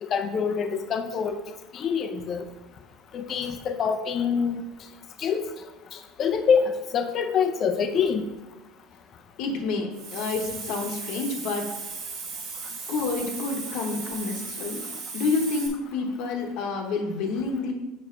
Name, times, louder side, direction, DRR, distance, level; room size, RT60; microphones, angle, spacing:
voice 1, 0.0-1.3 1.7-2.4 3.1-4.6 5.2-5.5 5.9-8.2, left 6 dB, 30° left, 7 dB, 0.6 m, -25 dB
voice 2, 9.4-11.6 12.9-14.8 15.1-17.7, left 4 dB, 55° left, 3 dB, 1.1 m, -28 dB
Hiss, 9.9-15.7, right 4 dB, 50° right, 1.8 m, -36 dB
6.6 x 5.9 x 3.8 m, 1.0 s
cardioid pair, 150°, 0 cm